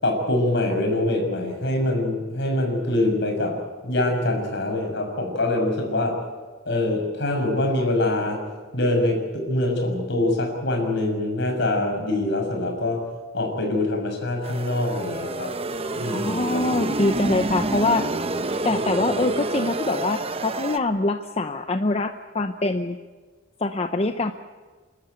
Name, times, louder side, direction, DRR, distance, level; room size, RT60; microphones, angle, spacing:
voice 1, 0.0-3.6 3.8-6.1 6.7-8.4 8.7-13.0 13.3-15.5 15.9-16.8, left 1 dB, 60° left, 2 dB, 6.3 m, -24 dB
sound 1, 14.4-20.8, right 2 dB, 30° right, 0.9 m, -28 dB
voice 2, 16.1-18.1 18.6-23.0 23.6-24.3, left 2 dB, 30° left, 7 dB, 0.8 m, -24 dB
30.0 x 13.0 x 9.4 m, 1.5 s
head